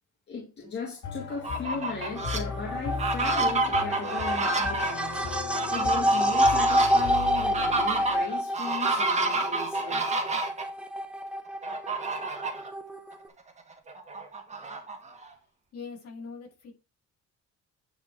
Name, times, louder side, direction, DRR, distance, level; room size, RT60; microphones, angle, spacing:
voice 1, 0.3-10.1, left 4 dB, 35° left, 2.0 m, -37 dB
sound 1, 1.0-8.2, left 7 dB, 75° left, 2.6 m, -37 dB
Fowl, 1.3-2.4 2.9-10.6 11.6-12.7 13.1-13.2 13.6-15.3, right 3 dB, 25° right, 2.0 m, -30 dB
sound 2, 2.0-13.3, equal, 5° right, 0.8 m, -28 dB
voice 2, 15.7-16.7, left 5 dB, 50° left, 6.0 m, -41 dB
10.5 x 4.5 x 4.5 m
cardioid pair, 175°, 30 cm